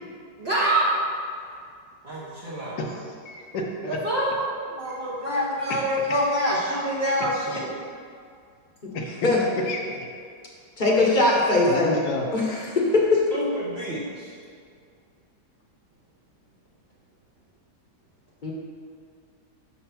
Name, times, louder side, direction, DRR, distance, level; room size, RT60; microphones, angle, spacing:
voice 1, 0.4-1.0 2.0-2.8 3.9-7.7 13.3-14.3, equal, 45° right, -8 dB, 1.1 m, -26 dB
voice 2, 2.8-4.0 8.9-9.3 9.7-10.0 11.7-12.3, left 2 dB, 75° left, 1 dB, 1.4 m, -31 dB
voice 3, 10.8-11.9 12.3-13.2 18.4-18.5, left 2 dB, 35° left, -3 dB, 1.0 m, -20 dB
6.4 x 4.5 x 5.7 m, 2.2 s
omnidirectional pair, 1.8 m